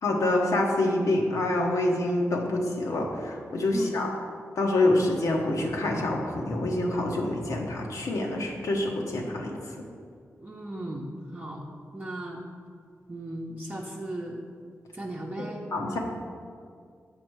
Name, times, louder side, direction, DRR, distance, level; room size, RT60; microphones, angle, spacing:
voice 1, 0.0-4.1 4.6-9.6 15.7-16.0, left 2 dB, 85° left, -1 dB, 1.0 m, -26 dB
voice 2, 10.4-11.6 11.9-12.4 13.1-14.4 14.9-16.0, right 1 dB, 30° right, -3 dB, 0.8 m, -36 dB
7.0 x 5.3 x 4.6 m, 2.2 s
cardioid pair, 60°, 6 cm